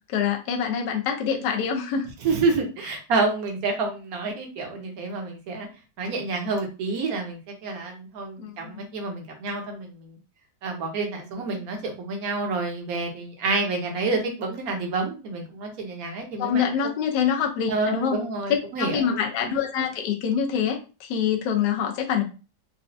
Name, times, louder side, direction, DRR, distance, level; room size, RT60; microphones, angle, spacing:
voice 1, 0.1-2.1 8.4-8.7 16.4-18.2 18.8-22.2, left 7 dB, 70° left, 2 dB, 1.2 m, -25 dB
voice 2, 2.2-5.7 6.0-10.1 10.6-16.6 17.7-19.1, right 3 dB, 60° right, 2 dB, 1.2 m, -28 dB
4.1 x 2.3 x 2.6 m, 0.32 s
omnidirectional pair, 2.0 m